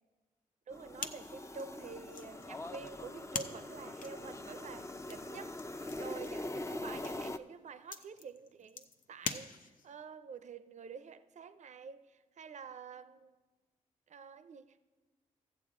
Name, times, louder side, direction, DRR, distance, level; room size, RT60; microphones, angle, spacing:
sound 1, 0.7-7.4, left 1 dB, 20° left, 0.6 m, -43 dB
voice 1, 0.7-13.4 14.1-14.9, right 5 dB, 55° right, 0.5 m, -49 dB
sound 2, 1.0-10.0, left 5 dB, 65° left, 0.6 m, -46 dB
14.0 x 7.6 x 3.7 m
supercardioid pair, 50°, 15 cm